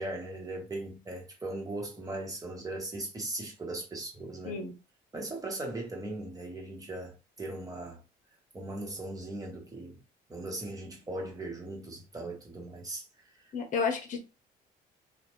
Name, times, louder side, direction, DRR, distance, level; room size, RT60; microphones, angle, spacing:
voice 1, 0.0-4.6 5.1-8.0 8.5-10.0 10.3-13.0, right 2 dB, 20° right, 1.3 m, -38 dB
voice 2, 13.5-14.2, left 5 dB, 50° left, 1.1 m, -31 dB
3.0 x 2.5 x 3.0 m
cardioid pair, 110°, 17 cm